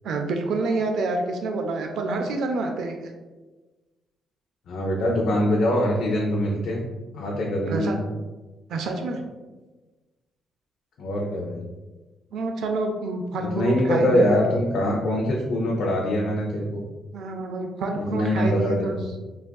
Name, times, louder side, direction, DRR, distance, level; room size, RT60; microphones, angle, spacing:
voice 1, 0.0-3.1 7.7-8.0 8.7-9.3 12.3-14.6 17.1-19.0, right 3 dB, 75° right, 4 dB, 0.3 m, -28 dB
voice 2, 4.7-6.8 7.1-8.0 11.0-11.6 13.4-16.8 17.9-19.1, left 1 dB, 70° left, -2 dB, 0.4 m, -23 dB
3.4 x 2.3 x 2.2 m, 1.2 s
cardioid pair, 90°, 0 cm